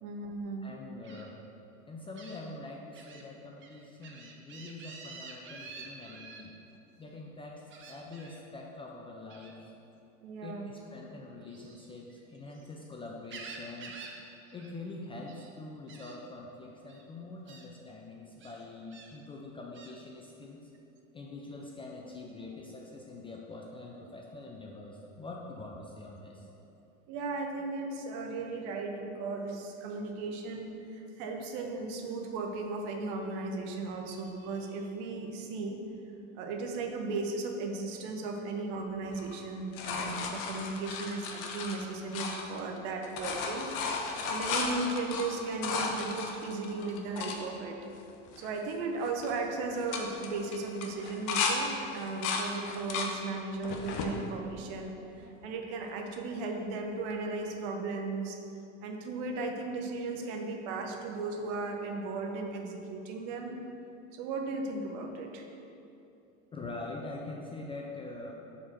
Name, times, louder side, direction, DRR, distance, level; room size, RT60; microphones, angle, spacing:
voice 1, 0.0-0.7 10.2-10.7 27.1-35.8 36.3-43.7 44.3-47.8 48.4-58.4 58.8-63.6 64.1-65.5, right 3 dB, 55° right, 3 dB, 1.0 m, -36 dB
voice 2, 0.6-1.5 1.9-6.5 7.0-9.7 10.4-14.0 14.5-20.7 21.1-26.5 66.5-68.3, left 2 dB, 15° left, -1 dB, 0.4 m, -44 dB
Gull seagull, 1.0-1.2 2.1-2.4 2.9-3.2 3.6-6.4 7.7-8.4 9.3-9.6 11.4-12.7 13.1-14.2 14.4-14.7 15.0-15.5 15.9-16.1 16.9-17.0 17.5-17.6 18.4-19.1 19.7-19.9, right 4 dB, 30° right, 0.8 m, -48 dB
sound 1, 39.1-42.8 43.0-47.4 48.0-48.1 48.3-48.7 49.0-49.3 49.7-51.6 51.9-53.1 53.6-54.1 54.8-55.5 57.1-57.2, left 5 dB, 50° left, 0.9 m, -35 dB
4.9 x 4.1 x 5.8 m, 2.8 s
hypercardioid pair, 100°, 40 cm